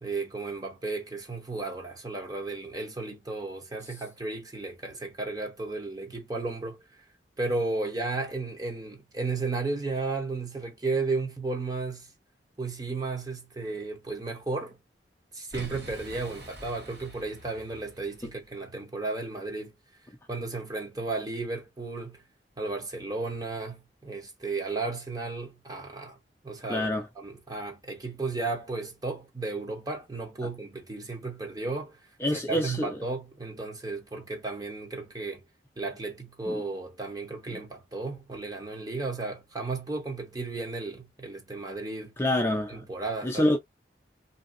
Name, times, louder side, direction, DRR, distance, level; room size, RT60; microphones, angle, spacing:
voice 1, 0.0-7.0 7.4-12.1 12.6-14.8 15.3-19.7 20.3-22.2 22.6-26.2 26.4-26.9 27.2-32.0 32.3-35.4 35.8-42.1 42.7-43.5, right 3 dB, 20° right, 0.7 m, -34 dB
Boom, 15.5-18.5, equal, 65° right, 1.2 m, -45 dB
voice 2, 26.7-27.0 32.2-32.9 36.5-36.6 37.5-37.6 42.2-42.8 43.2-43.6, left 1 dB, 15° left, 0.4 m, -26 dB
2.8 x 2.7 x 2.5 m
head